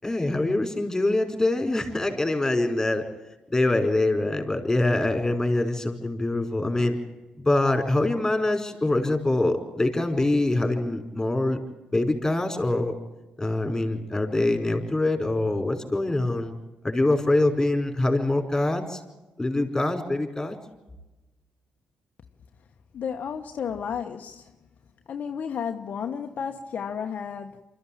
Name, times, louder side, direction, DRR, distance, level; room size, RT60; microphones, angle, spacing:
voice 1, 0.0-3.1 3.5-7.0 7.4-11.6 11.9-12.9 13.4-16.5 16.8-19.0 19.4-20.6, left 2 dB, 15° left, 5.0 m, -24 dB
voice 2, 22.9-24.5 25.1-27.6, left 7 dB, 60° left, 1.1 m, -32 dB
25.0 x 14.0 x 8.7 m
supercardioid pair, 65°, 3 cm